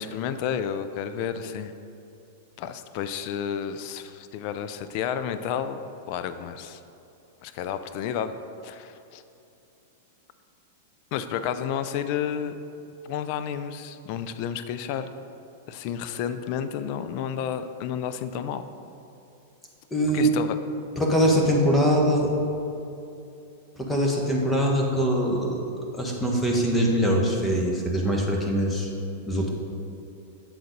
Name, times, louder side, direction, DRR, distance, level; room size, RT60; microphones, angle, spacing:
voice 1, 0.0-1.7 2.6-6.8 7.4-8.3 8.6-9.2 11.1-12.5 13.0-15.1 15.7-18.7 20.1-20.6, left 8 dB, 50° left, 10 dB, 0.4 m, -31 dB
voice 2, 19.9-20.3 21.0-22.3 23.8-25.6 25.9-28.9 29.3-29.5, equal, 10° left, -1 dB, 1.2 m, -23 dB
7.7 x 4.0 x 5.2 m, 2.7 s
hypercardioid pair, 115°, 0 cm